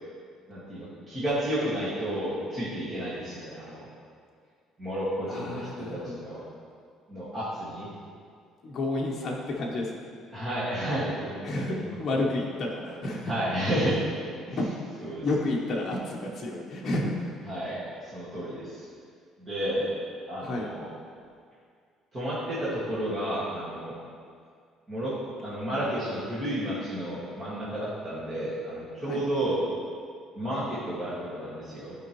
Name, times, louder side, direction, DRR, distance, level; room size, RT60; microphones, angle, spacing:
voice 1, 0.5-3.9 4.8-6.4 7.1-7.9 10.3-12.0 13.2-14.0 14.5-14.6 15.0-15.2 17.5-18.8 19.4-19.9 20.3-20.9 22.1-24.0 24.9-25.1 25.4-29.6 30.3-31.9, right 1 dB, 25° right, -11 dB, 1.9 m, -31 dB
voice 2, 5.3-6.2 8.6-10.1 11.4-13.3 14.6-14.7 14.9-17.2 20.4-20.7 29.1-29.2, left 2 dB, 30° left, -4 dB, 1.0 m, -31 dB
13.0 x 5.2 x 3.1 m, 2.2 s
cardioid pair, 160°, 0 cm